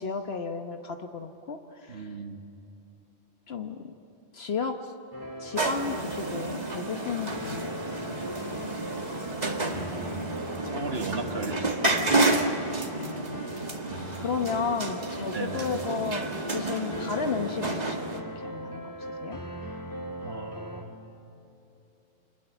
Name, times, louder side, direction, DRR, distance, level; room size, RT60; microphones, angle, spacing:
voice 1, 0.0-2.1 3.5-3.9 4.3-4.9 5.4-8.1 12.7-13.3 13.8-19.4, left 5 dB, 65° left, 5 dB, 1.3 m, -34 dB
voice 2, 1.9-2.5 9.6-10.2 10.7-12.2 13.8-14.2 15.3-15.7 20.2-21.0, right 4 dB, 65° right, 5 dB, 1.8 m, -37 dB
sound 1, 5.1-20.8, equal, 15° left, 2.3 m, -40 dB
sound 2, 5.5-18.2, right 2 dB, 40° right, 1.9 m, -30 dB
29.5 x 26.5 x 6.9 m, 2.9 s
omnidirectional pair, 1.1 m